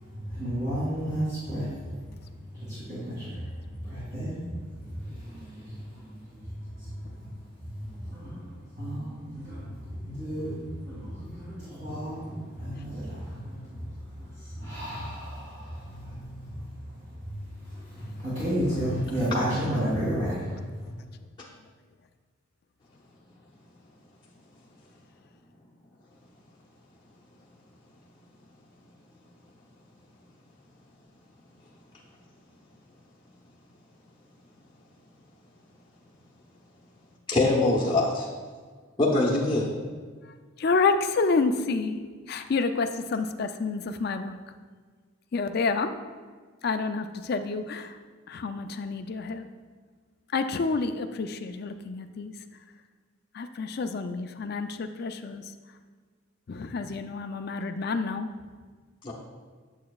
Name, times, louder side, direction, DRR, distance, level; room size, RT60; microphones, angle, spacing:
voice 1, 0.1-1.7 2.5-6.5 7.7-8.5 8.8-16.7 17.3-17.4 17.7-20.6, equal, 40° right, -11 dB, 2.2 m, -33 dB
voice 2, 18.6-19.2 40.6-44.4 45.3-45.9 46.6-47.9 48.3-49.5 50.3-52.3 53.3-55.4 56.5-58.3, left 4 dB, 50° left, 8 dB, 0.4 m, -29 dB
voice 3, 37.3-38.3 39.0-39.7 59.0-59.1, left 2 dB, 20° left, -6 dB, 0.7 m, -23 dB
8.5 x 7.2 x 2.3 m, 1.5 s
head